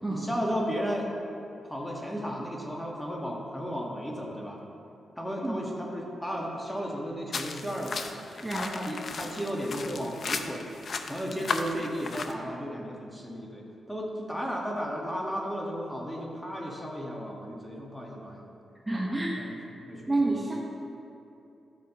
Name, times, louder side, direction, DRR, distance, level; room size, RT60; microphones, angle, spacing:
voice 1, 0.1-1.1 1.7-4.6 5.2-8.2 8.6-10.6 11.1-18.5 18.9-19.6 19.9-20.3, equal, 5° left, -2 dB, 1.6 m, -34 dB
sound 1, 7.3-12.3, left 4 dB, 55° left, 0.5 m, -35 dB
voice 2, 8.3-8.7 18.9-19.4 20.1-20.5, right 2 dB, 15° right, -4 dB, 1.1 m, -29 dB
13.0 x 6.1 x 3.0 m, 2.8 s
cardioid pair, 75°, 0 cm